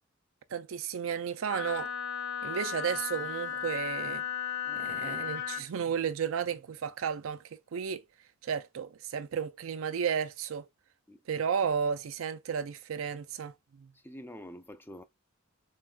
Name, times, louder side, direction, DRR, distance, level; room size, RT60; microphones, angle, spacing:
voice 1, 0.5-1.9 2.4-4.2 4.8-8.0 8.4-10.7 11.3-13.9, right 7 dB, 85° right, 0.4 m, -33 dB
Wind instrument woodwind instrument, 1.5-5.7, left 8 dB, 75° left, 0.6 m, -35 dB
voice 2, 4.6-5.3 11.1-11.2 13.9-15.0, equal, 10° left, 0.4 m, -48 dB
6.2 x 2.3 x 2.3 m
head